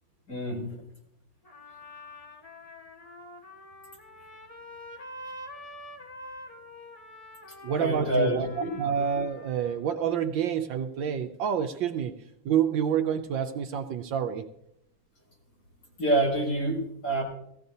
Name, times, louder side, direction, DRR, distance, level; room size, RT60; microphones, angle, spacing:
voice 1, 0.3-0.6 7.8-8.7 16.0-17.2, right 1 dB, 60° left, -3 dB, 5.4 m, -27 dB
Trumpet, 1.4-9.9, left 1 dB, 20° left, 1.4 m, -46 dB
voice 2, 7.6-12.1 12.4-14.5, right 8 dB, 70° right, 7 dB, 1.3 m, -28 dB
18.5 x 15.0 x 2.7 m, 0.77 s
omnidirectional pair, 2.3 m